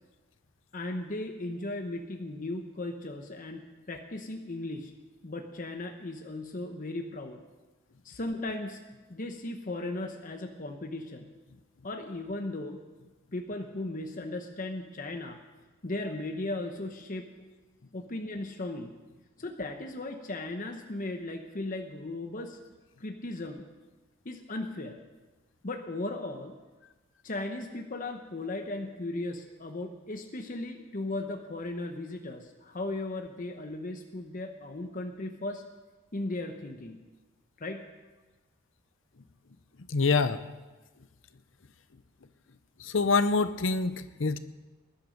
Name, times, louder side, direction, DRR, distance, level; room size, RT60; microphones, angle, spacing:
voice 1, 0.7-4.9 5.2-7.4 8.0-8.8 9.1-11.3 11.8-12.8 13.3-15.4 15.8-17.3 17.9-18.9 19.4-22.6 23.0-23.6 24.2-25.0 25.6-26.5 27.2-35.6 36.1-37.0 37.6-37.8, left 2 dB, 40° left, 4 dB, 1.0 m, -36 dB
voice 2, 39.9-40.4 42.8-44.4, left 4 dB, 70° left, 13 dB, 0.8 m, -25 dB
20.0 x 11.0 x 5.2 m, 1.2 s
head